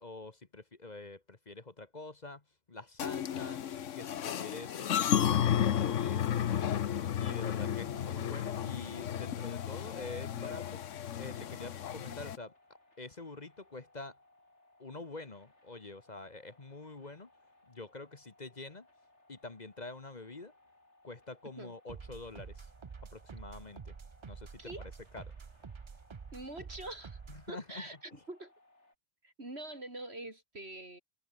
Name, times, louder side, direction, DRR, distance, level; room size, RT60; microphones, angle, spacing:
voice 1, 0.0-2.4 2.7-3.6 3.9-10.8 11.2-12.5 13.0-14.2 14.8-17.3 17.7-18.9 19.3-20.5 21.0-22.7 23.1-24.0 24.3-25.3 27.3-27.8 28.1-28.2, left 3 dB, 35° left, 1.5 m, -46 dB
sound 1, 3.0-12.4, left 9 dB, 90° left, 1.3 m, -33 dB
sound 2, 11.3-28.9, left 2 dB, 65° left, 5.7 m, -66 dB
sound 3, 21.9-27.5, right 5 dB, 35° right, 0.5 m, -48 dB
voice 2, 26.3-27.2 27.5-28.0 28.3-28.5 29.2-31.0, right 2 dB, 60° right, 5.6 m, -44 dB
omnidirectional pair, 1.2 m